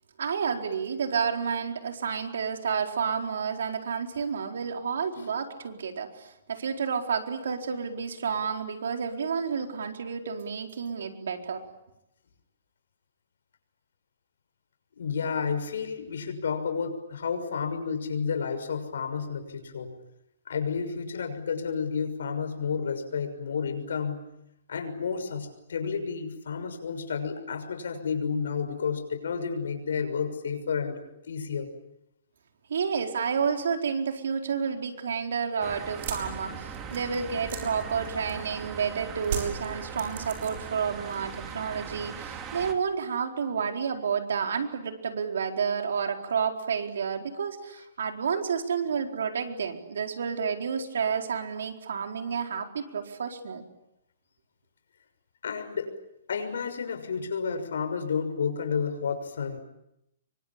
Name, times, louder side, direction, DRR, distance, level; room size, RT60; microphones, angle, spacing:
voice 1, 0.2-11.6 32.7-53.6, right 6 dB, 75° right, 4 dB, 4.3 m, -30 dB
voice 2, 15.0-19.9 20.5-24.2 24.7-31.7 55.4-55.9 56.3-59.6, left 6 dB, 75° left, 7 dB, 6.4 m, -31 dB
sound 1, 35.6-42.7, right 6 dB, 15° right, 2.6 m, -40 dB
sound 2, 35.9-38.6 39.2-40.8 41.1-41.7, right 7 dB, 45° right, 7.2 m, -37 dB
27.0 x 24.5 x 8.8 m, 0.84 s
hypercardioid pair, 170°, 0 cm